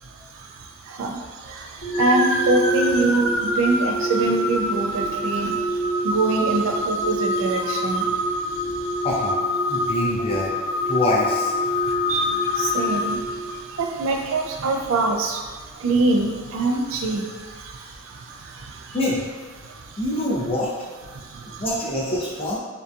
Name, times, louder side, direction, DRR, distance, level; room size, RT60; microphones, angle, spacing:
voice 1, 0.0-9.1 9.8-9.9 11.7-19.0 19.6-20.0 21.1-21.6, right 2 dB, 75° right, 3 dB, 0.3 m, -25 dB
sound 1, 1.8-13.8, left 1 dB, 80° left, 0.7 m, -25 dB
voice 2, 9.0-9.3 9.7-10.6 10.9-11.5 18.9-19.2 20.0-20.7 21.5-22.6, left 1 dB, 25° left, -5 dB, 0.5 m, -25 dB
2.7 x 2.2 x 2.4 m, 1.4 s
head